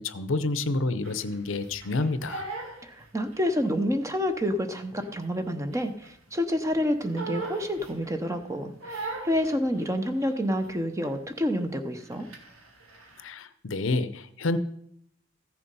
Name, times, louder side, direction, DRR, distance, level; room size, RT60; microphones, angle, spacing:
voice 1, 0.0-2.5 13.2-14.6, left 3 dB, 65° left, 12 dB, 0.7 m, -29 dB
Crying sobbing, 1.0-3.7 4.0-6.3 6.6-8.3 8.8-10.7 11.0-11.3 11.6-13.2, right 3 dB, 90° right, 2.0 m, -40 dB
voice 2, 2.8-12.3, equal, 15° right, 8 dB, 0.8 m, -28 dB
14.5 x 6.9 x 5.4 m, 0.72 s
head